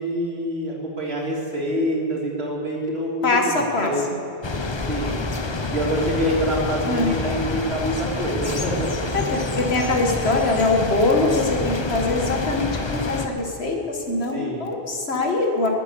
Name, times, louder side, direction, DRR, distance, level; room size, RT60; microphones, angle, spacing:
voice 1, 0.0-4.1 4.9-5.2 5.7-9.1 14.3-14.7, equal, 75° right, -3 dB, 3.2 m, -26 dB
voice 2, 3.2-3.9 6.8-7.1 9.1-15.7, left 2 dB, 80° left, 1 dB, 2.0 m, -23 dB
sound 1, 4.4-13.3, left 3 dB, 30° left, 0.8 m, -27 dB
20.0 x 8.5 x 6.9 m, 2.8 s
omnidirectional pair, 1.1 m